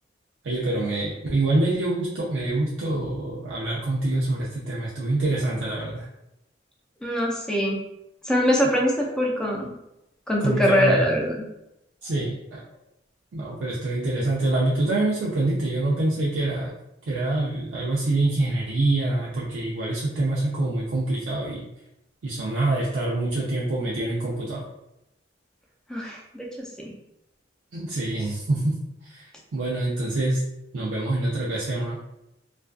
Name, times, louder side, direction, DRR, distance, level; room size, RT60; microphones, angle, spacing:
voice 1, 0.4-6.1 10.4-11.0 12.0-12.6 13.3-16.7 17.1-21.7 22.2-24.6 27.7-28.8 29.1-29.2 29.5-30.4 30.7-32.0, right 2 dB, 90° right, -6 dB, 0.5 m, -25 dB
voice 2, 7.0-7.8 8.2-9.8 10.3-11.4 25.9-26.9, equal, 5° left, -2 dB, 0.4 m, -23 dB
2.4 x 2.2 x 2.3 m, 0.86 s
head